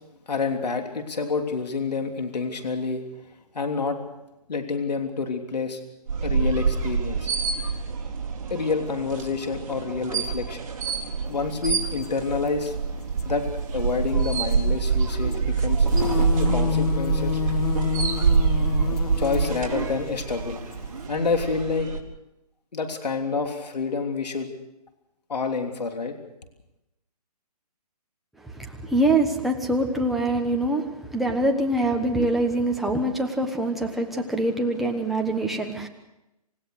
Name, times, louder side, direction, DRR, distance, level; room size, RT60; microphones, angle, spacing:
voice 1, 0.3-3.0 3.5-4.0 4.5-5.8 6.2-7.3 8.5-10.6 11.3-12.7 13.2-13.4 13.7-15.9 16.4-17.4 19.2-20.6 21.1-21.9 22.7-24.5 25.3-26.1, left 4 dB, 90° left, 4 dB, 3.3 m, -28 dB
sound 1, 6.1-22.0, right 5 dB, 55° right, 4.2 m, -26 dB
sound 2, 12.0-12.1 12.5-12.6 13.0-13.2 14.5-15.0 15.3-15.4 15.6-21.1, left 8 dB, 70° left, 2.2 m, -29 dB
voice 2, 28.5-35.9, right 1 dB, ahead, 1 dB, 1.1 m, -24 dB
28.0 x 16.5 x 6.6 m, 0.91 s
hypercardioid pair, 165°, 20 cm